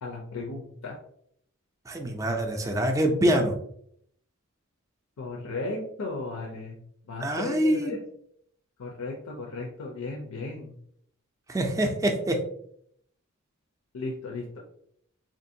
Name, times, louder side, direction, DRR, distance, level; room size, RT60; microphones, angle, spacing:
voice 1, 0.0-1.0 5.2-8.0 8.8-10.7 13.9-14.6, left 3 dB, 80° left, 0 dB, 0.5 m, -35 dB
voice 2, 1.9-3.6 7.2-8.0 11.5-12.4, right 1 dB, 15° right, 3 dB, 0.4 m, -25 dB
3.7 x 2.6 x 2.6 m, 0.68 s
head